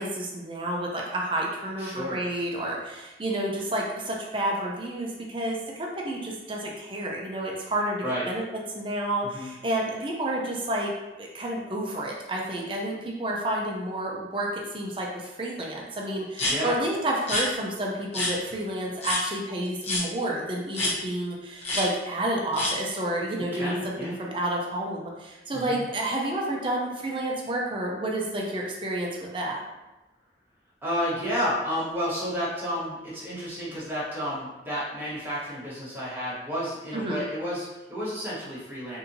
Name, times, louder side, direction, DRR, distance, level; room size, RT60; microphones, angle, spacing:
voice 1, 0.0-8.4 8.7-10.9 11.2-29.6 36.9-37.2, right 1 dB, 30° right, -2 dB, 0.5 m, -30 dB
voice 2, 1.8-2.2 8.0-8.3 9.3-9.5 16.5-16.7 23.5-24.2 25.5-25.8 30.8-39.0, equal, 10° right, -9 dB, 1.1 m, -31 dB
sound 1, 16.3-16.5 17.2-17.5 18.1-18.3 19.0-19.2 19.8-20.0 20.7-20.9 21.6-21.8 22.5-22.7, left 2 dB, 35° left, 0.9 m, -27 dB
4.1 x 2.7 x 2.7 m, 1.1 s
head